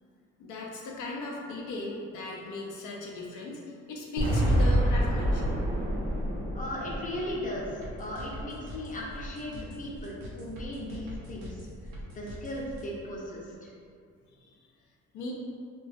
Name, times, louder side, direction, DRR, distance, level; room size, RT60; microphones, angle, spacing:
voice 1, 0.4-5.5 14.4-14.5 15.1-15.3, left 2 dB, 75° left, -2 dB, 0.5 m, -37 dB
sound 1, 4.2-8.3, equal, 30° right, 0.6 m, -27 dB
voice 2, 6.5-11.7 12.1-13.7, left 1 dB, 25° left, -4 dB, 0.6 m, -37 dB
sound 2, 7.8-12.9, equal, 90° right, 0.6 m, -43 dB
2.3 x 2.3 x 2.5 m, 2.3 s
cardioid pair, 90°, 30 cm